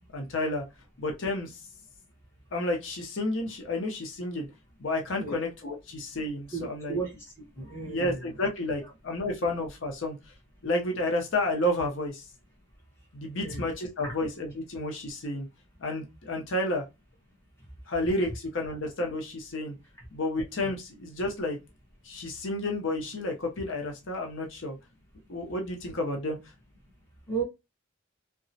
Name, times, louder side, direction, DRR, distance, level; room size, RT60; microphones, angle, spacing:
voice 1, 0.1-0.6 1.0-1.6 2.5-4.5 4.8-7.0 7.7-10.2 10.6-12.2 13.1-15.5 15.8-16.9 17.9-19.7 20.1-21.6 22.0-24.8 25.3-26.4, left 1 dB, 80° left, 0.7 m, -31 dB
voice 2, 6.5-7.2 7.6-8.3 13.4-13.7 14.0-14.1 27.3-27.4, right 4 dB, 15° left, 1.1 m, -34 dB
2.8 x 2.2 x 2.6 m
head